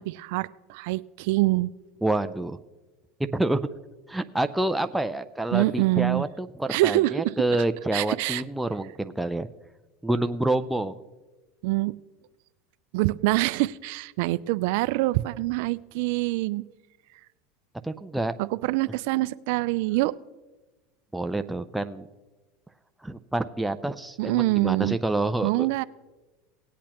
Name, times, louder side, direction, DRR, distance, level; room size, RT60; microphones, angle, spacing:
voice 1, 0.0-1.7 5.5-6.3 6.7-7.3 7.9-8.4 11.6-12.0 12.9-16.6 18.4-20.1 24.2-25.0 25.4-25.8, right 19 dB, 70° right, 17 dB, 0.3 m, -25 dB
voice 2, 2.0-2.6 3.3-3.6 4.1-9.5 10.0-11.0 17.8-18.4 21.1-22.1 23.0-25.8, right 2 dB, 5° right, 7 dB, 0.4 m, -27 dB
18.5 x 8.4 x 2.9 m, 1.2 s
supercardioid pair, 115°, 0 cm